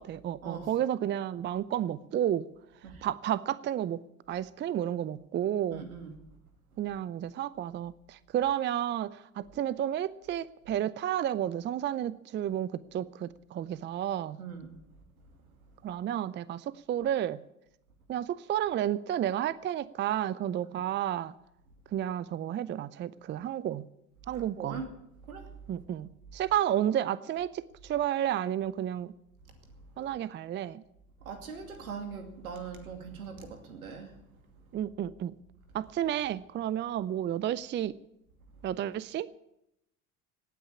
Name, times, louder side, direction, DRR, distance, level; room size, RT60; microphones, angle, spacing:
voice 1, 0.0-2.4 3.0-4.0 4.3-5.8 6.8-14.4 15.8-17.4 18.1-21.3 21.9-23.9 24.3-24.8 25.7-29.1 30.0-30.8 34.7-35.4 35.7-37.9 38.6-39.3, right 11 dB, 25° right, 19 dB, 0.5 m, -31 dB
voice 2, 5.7-6.1 14.4-14.7 20.7-20.8 24.3-24.9 25.3-25.5 31.2-34.1, right 5 dB, 80° right, 7 dB, 2.6 m, -41 dB
17.5 x 9.3 x 8.6 m, 0.83 s
figure-of-eight pair, 65°, 42 cm